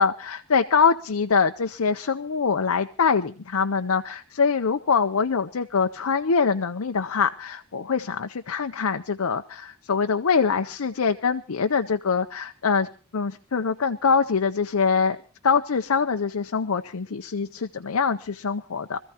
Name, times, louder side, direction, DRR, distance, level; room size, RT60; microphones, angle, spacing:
voice 1, 0.0-15.2 15.4-19.0, left 5 dB, 75° left, 7 dB, 0.6 m, -24 dB
25.5 x 14.5 x 2.9 m, 0.36 s
head